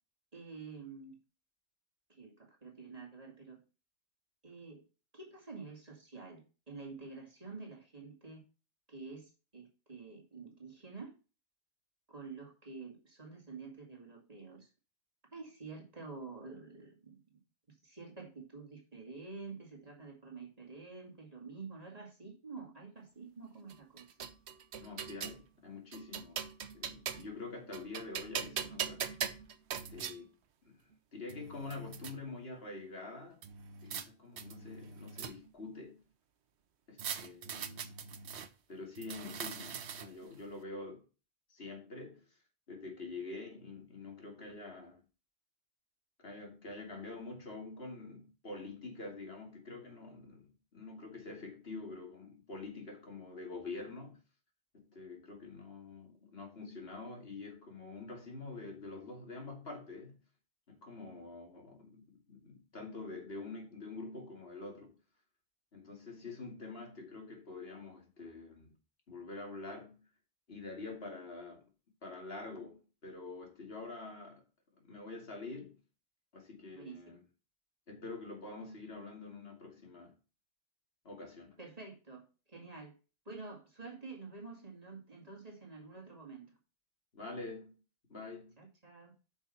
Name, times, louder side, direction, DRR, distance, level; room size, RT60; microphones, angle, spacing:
voice 1, 0.3-1.2 2.2-3.6 4.4-4.8 5.1-8.4 8.9-11.1 12.1-14.7 15.3-17.4 17.8-24.3 76.8-77.0 81.6-83.0 83.3-86.5 88.6-89.1, right 4 dB, 35° right, 2.4 m, -48 dB
sound 1, 23.7-25.4 25.9-27.4 27.7-30.2 30.9-31.0 31.3-32.1 33.4-34.1 34.4-35.6 37.0-38.5 39.0-40.3, right 7 dB, 75° right, 1.1 m, -41 dB
voice 2, 24.8-26.4 26.7-29.3 29.9-30.3 30.6-30.8 31.1-33.4 33.8-36.0 36.9-38.0 38.7-41.0 41.5-42.4 42.7-45.0 46.2-54.2 54.7-60.2 60.7-65.0 65.7-68.7 69.1-70.0 70.5-71.6 72.0-74.4 74.8-75.7 76.3-77.2 77.9-80.1 81.0-81.6 87.1-87.8 88.1-88.6, left 3 dB, 65° left, 2.7 m, -46 dB
8.9 x 5.8 x 4.1 m
omnidirectional pair, 1.1 m